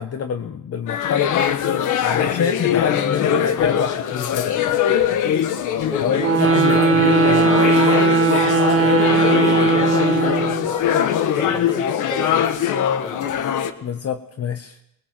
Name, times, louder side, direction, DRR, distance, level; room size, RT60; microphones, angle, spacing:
voice 1, 0.0-1.4 2.0-4.8 6.0-7.6 13.8-14.8, left 7 dB, 55° left, 8 dB, 1.3 m, -26 dB
sound 1, 0.9-13.7, left 9 dB, 85° left, 1.5 m, -21 dB
voice 2, 5.9-7.7 8.6-8.9 9.2-10.2 10.7-12.6 13.0-13.3, equal, 15° left, 6 dB, 4.1 m, -34 dB
sound 2, 6.2-10.7, right 4 dB, 45° right, 1.9 m, -18 dB
21.0 x 19.5 x 7.6 m, 0.77 s
cardioid pair, 90°, 30 cm